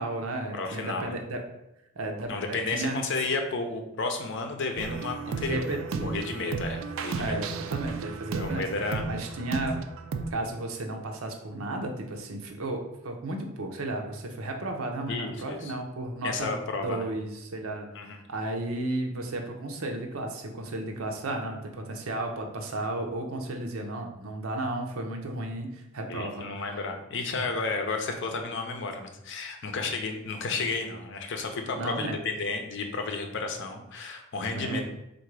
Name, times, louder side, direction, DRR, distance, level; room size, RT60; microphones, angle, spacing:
voice 1, 0.0-1.4 1.9-3.0 5.4-6.2 7.2-8.6 9.1-9.8 10.3-17.9 18.3-26.8 31.7-32.2 34.5-34.8, right 2 dB, 90° right, 3 dB, 0.7 m, -33 dB
voice 2, 0.5-1.2 2.3-7.4 8.3-9.0 15.1-15.7 16.2-17.1 17.9-18.2 26.1-34.8, left 3 dB, 60° left, 5 dB, 0.6 m, -32 dB
sound 1, 4.8-10.3, right 4 dB, 70° right, 0.4 m, -34 dB
3.7 x 2.6 x 4.6 m, 0.87 s
head